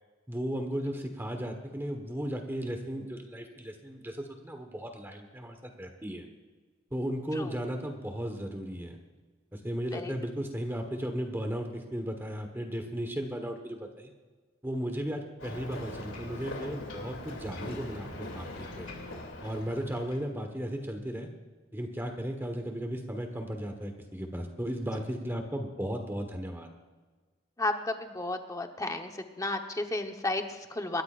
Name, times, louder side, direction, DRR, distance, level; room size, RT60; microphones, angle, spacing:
voice 1, 0.3-6.3 6.9-9.0 9.5-14.1 14.6-18.5 18.7-18.9 19.4-21.3 21.7-26.7, equal, 10° right, 4 dB, 1.3 m, -35 dB
Ocean, 15.4-20.3, left 1 dB, 85° left, 2.8 m, -41 dB
voice 2, 27.6-29.1 29.4-31.0, left 2 dB, 20° left, 5 dB, 1.1 m, -32 dB
27.0 x 13.0 x 2.5 m, 1.4 s
head